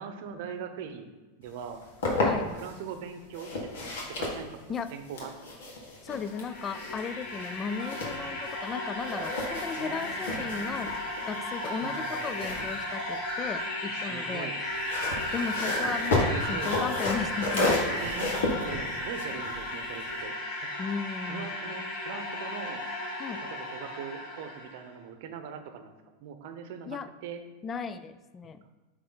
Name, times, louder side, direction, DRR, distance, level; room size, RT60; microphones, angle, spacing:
voice 1, 0.0-1.8 2.4-4.6 4.9-5.3 9.8-10.9 11.8-12.4 13.9-14.6 16.2-17.0 18.0-20.3 20.6-20.9 21.3-22.8 23.4-25.9 26.2-27.4 28.6-28.7, right 7 dB, 65° right, 7 dB, 0.8 m, -41 dB
sound 1, 1.6-2.7 3.3-8.7 9.0-13.6 14.6-20.2, left 2 dB, 80° left, 1.8 m, -33 dB
voice 2, 6.0-14.5 15.3-17.8 20.8-21.8 23.2-23.4 26.9-27.1 27.6-28.6, left 6 dB, 25° left, 12 dB, 0.4 m, -36 dB
sound 2, 6.1-24.8, left 1 dB, 40° left, 1.4 m, -35 dB
9.5 x 3.3 x 3.9 m, 1.2 s
supercardioid pair, 135°, 0 cm